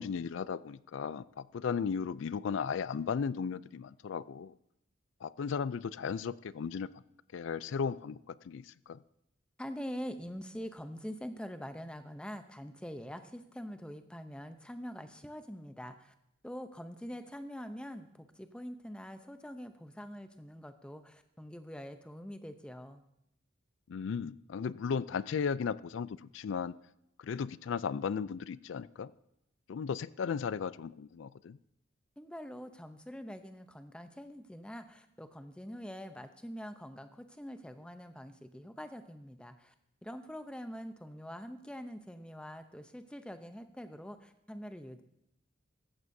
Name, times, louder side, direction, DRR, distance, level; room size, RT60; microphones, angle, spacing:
voice 1, 0.0-4.5 5.2-6.9 7.3-9.0 23.9-26.7 27.2-29.1 29.7-31.6, left 6 dB, 70° left, 18 dB, 0.4 m, -36 dB
voice 2, 9.6-16.1 16.4-23.0 32.2-39.7 40.0-45.0, equal, 5° left, 8 dB, 0.6 m, -44 dB
15.5 x 14.0 x 2.7 m, 0.81 s
head